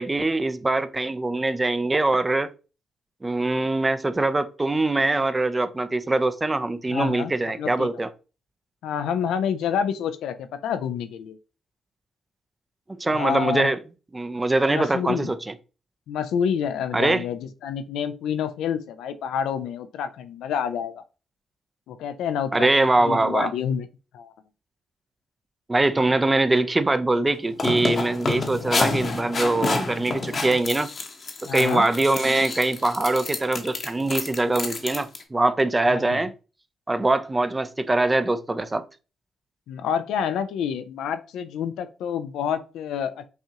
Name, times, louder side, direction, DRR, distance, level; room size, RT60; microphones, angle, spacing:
voice 1, 0.0-2.5 3.2-8.1 13.0-13.8 14.1-15.4 16.9-17.2 22.5-23.5 25.7-30.9 31.4-36.3 36.9-38.8, right 2 dB, 25° right, 0.5 m, -23 dB
voice 2, 6.9-7.3 7.6-7.9 8.8-11.4 13.1-13.7 14.7-15.3 16.1-21.0 21.9-23.9 24.1-24.3 31.5-31.8 35.9-36.3 39.7-43.3, left 8 dB, 80° left, 0.4 m, -28 dB
sound 1, 27.3-35.2, left 3 dB, 45° left, 0.9 m, -28 dB
5.5 x 2.4 x 2.8 m
supercardioid pair, 60°, 0 cm